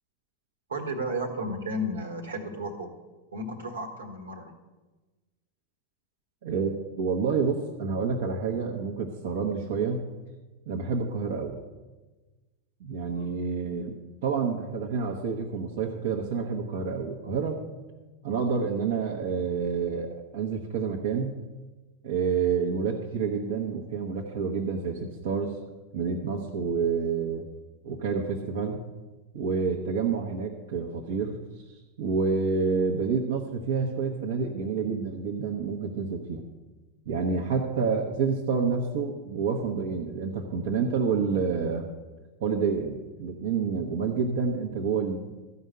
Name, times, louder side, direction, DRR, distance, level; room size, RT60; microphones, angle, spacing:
voice 1, 0.7-2.9 3.3-4.6 13.1-13.3, equal, 70° right, 4 dB, 1.7 m, -33 dB
voice 2, 7.0-10.0 10.7-11.6 12.8-17.6 18.2-21.4 22.0-25.6 25.9-27.4 27.8-28.8 29.3-31.4 32.0-36.4 37.1-41.9 42.4-45.2, right 5 dB, 55° right, -1 dB, 1.2 m, -28 dB
14.0 x 5.6 x 7.7 m, 1.2 s
figure-of-eight pair, 90°, 0 cm